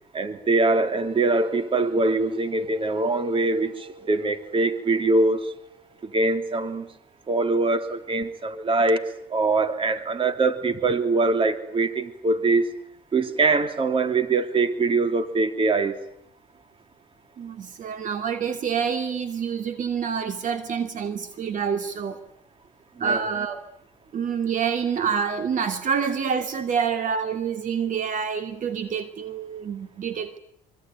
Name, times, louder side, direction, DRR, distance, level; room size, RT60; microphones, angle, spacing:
voice 1, 0.1-5.5 6.0-6.9 7.3-12.7 13.1-16.0 23.0-23.2, right 3 dB, 30° right, 9 dB, 3.2 m, -23 dB
voice 2, 17.4-22.2 23.0-23.6 24.1-30.4, right 6 dB, 50° right, 8 dB, 2.7 m, -27 dB
25.0 x 25.0 x 9.4 m, 0.71 s
cardioid pair, 110°, 17 cm